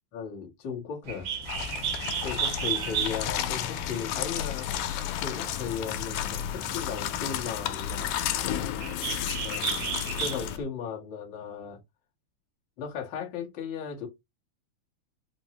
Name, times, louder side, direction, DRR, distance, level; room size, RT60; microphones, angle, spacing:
voice 1, 0.1-1.4 2.2-4.7 5.2-8.2 9.4-11.8 12.8-14.1, left 6 dB, 60° left, 1.2 m, -36 dB
Bird, 1.0-10.6, right 8 dB, 85° right, 1.0 m, -35 dB
sound 1, 1.4-10.6, left 11 dB, 85° left, 2.1 m, -32 dB
sound 2, 2.7-8.3, equal, 15° right, 0.3 m, -46 dB
5.1 x 2.0 x 2.8 m
omnidirectional pair, 3.6 m